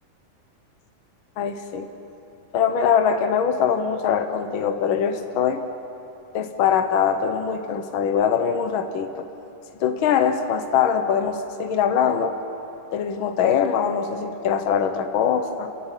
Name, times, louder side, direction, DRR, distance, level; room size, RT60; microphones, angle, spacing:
voice 1, 1.4-1.9 2.5-5.6 6.3-9.1 9.8-12.3 12.9-15.7, left 7 dB, 85° left, 7 dB, 1.1 m, -22 dB
29.5 x 16.0 x 9.1 m, 2.9 s
omnidirectional pair, 4.0 m